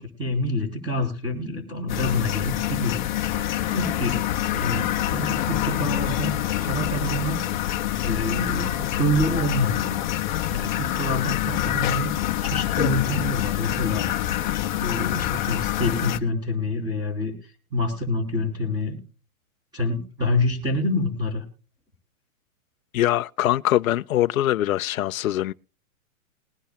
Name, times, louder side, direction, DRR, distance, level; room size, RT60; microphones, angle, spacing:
voice 1, 0.0-4.2 4.5-7.4 8.0-10.0 10.5-12.1 12.4-14.1 14.8-17.3 17.7-19.0 19.7-21.4, left 1 dB, 10° right, 3.6 m, -27 dB
sound 1, 1.9-16.2, left 13 dB, 35° left, 0.9 m, -26 dB
voice 2, 22.9-25.5, left 13 dB, 75° left, 0.6 m, -23 dB
21.5 x 10.0 x 2.2 m
hypercardioid pair, 160°, 42 cm